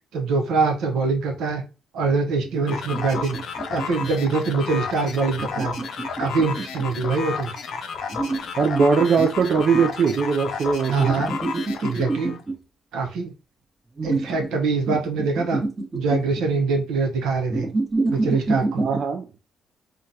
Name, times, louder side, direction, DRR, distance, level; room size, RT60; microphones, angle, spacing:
voice 1, 0.1-1.6 1.9-3.4 3.7-5.7 6.2-7.5 10.9-11.3 11.8-12.4 12.9-13.3 14.0-15.6 15.9-17.7 18.1-18.9, right 4 dB, 85° right, 0.8 m, -24 dB
sound 1, 2.4-4.3 5.3-7.1 8.1-10.0 11.0-12.6 14.0-14.6 14.9-16.4 17.5-19.0, right 2 dB, 30° right, 1.0 m, -27 dB
sound 2, 2.7-12.4, left 5 dB, 70° left, 0.5 m, -32 dB
voice 2, 8.6-11.1 18.8-19.3, right 5 dB, 55° right, 0.4 m, -20 dB
3.7 x 2.3 x 2.7 m
cardioid pair, 90°, 0 cm